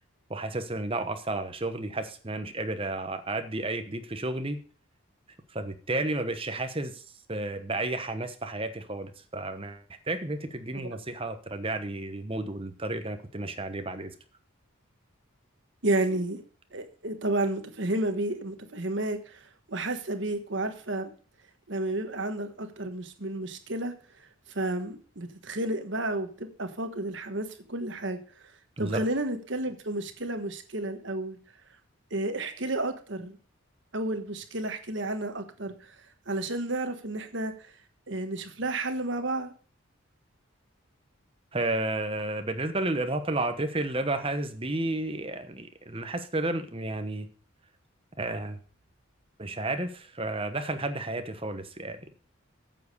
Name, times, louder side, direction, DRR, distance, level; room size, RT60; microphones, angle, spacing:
voice 1, 0.3-4.6 5.5-7.0 7.3-14.1 28.8-29.0 41.5-47.3 48.2-48.6 49.4-52.0, right 2 dB, 25° right, 8 dB, 1.0 m, -32 dB
voice 2, 15.8-16.4 16.7-19.4 19.7-21.1 21.7-23.9 24.5-28.2 28.8-31.4 32.1-33.4 33.9-35.7 36.3-37.5 38.1-39.5, right 2 dB, 55° right, 7 dB, 1.4 m, -31 dB
9.1 x 7.3 x 6.8 m, 0.41 s
head